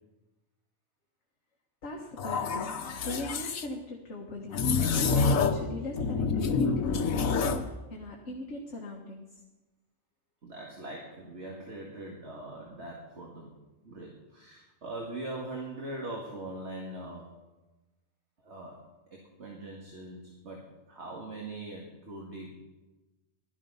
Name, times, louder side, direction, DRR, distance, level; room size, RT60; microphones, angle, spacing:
voice 1, 1.8-4.7 5.0-9.4, left 2 dB, 60° left, 0 dB, 1.8 m, -41 dB
sound 1, 2.2-3.7 4.5-5.7 6.0-7.7, left 4 dB, 85° left, 1.4 m, -27 dB
voice 2, 10.4-13.6 13.8-17.4 18.4-18.8 19.1-22.5, right 2 dB, 55° right, -1 dB, 2.2 m, -41 dB
16.0 x 12.5 x 5.6 m, 1.1 s
omnidirectional pair, 1.4 m